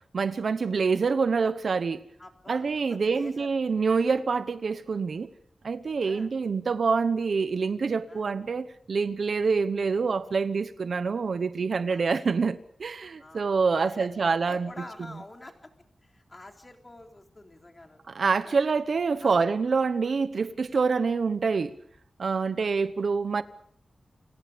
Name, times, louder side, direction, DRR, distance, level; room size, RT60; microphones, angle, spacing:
voice 1, 0.0-2.0 2.5-5.3 5.6-14.7 18.1-21.8 22.2-23.4, right 5 dB, 55° right, 1.0 m, -26 dB
voice 2, 2.2-3.5 6.0-6.3 8.1-8.2 11.9-12.1 13.2-15.7 16.0-18.0 18.4-18.6 19.2-19.5 22.3-22.9, left 2 dB, 20° left, 3.6 m, -47 dB
29.5 x 26.5 x 5.2 m
wide cardioid pair, 165°, 0 cm